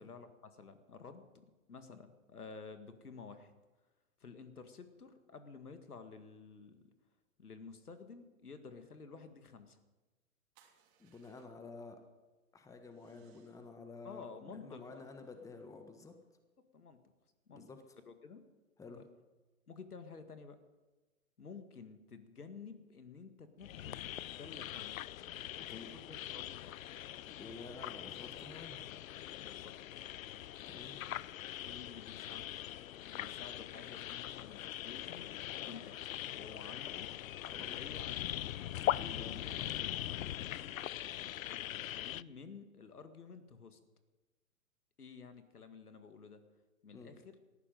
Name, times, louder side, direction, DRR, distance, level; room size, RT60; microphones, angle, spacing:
voice 1, 0.0-3.5 4.2-6.9 7.4-9.8 14.0-15.1 16.7-17.0 17.5-17.7 18.1-18.4 18.9-19.0 19.7-20.6 21.4-25.0 25.7-26.8 29.4-29.9 31.6-32.6 33.0-35.3 35.6-36.1 36.3-37.2 37.4-38.5 39.1-39.5 39.7-40.8 41.9-43.8 45.0-46.4 46.8-47.4, left 5 dB, 85° left, 8 dB, 2.0 m, -52 dB
sound 1, 10.5-11.8 12.8-13.8 14.7-16.3, right 9 dB, 35° right, 3.0 m, -72 dB
voice 2, 11.0-12.0 12.5-16.1 17.5-17.8 18.8-19.0 25.6-25.9 27.4-28.8 30.7-31.0 37.6-37.8 39.0-39.8 46.9-47.1, left 3 dB, 5° left, 7 dB, 1.3 m, -51 dB
sound 2, 23.6-42.2, left 12 dB, 65° left, 0.6 m, -41 dB
19.0 x 14.5 x 5.3 m, 1.2 s
hypercardioid pair, 125°, 44 cm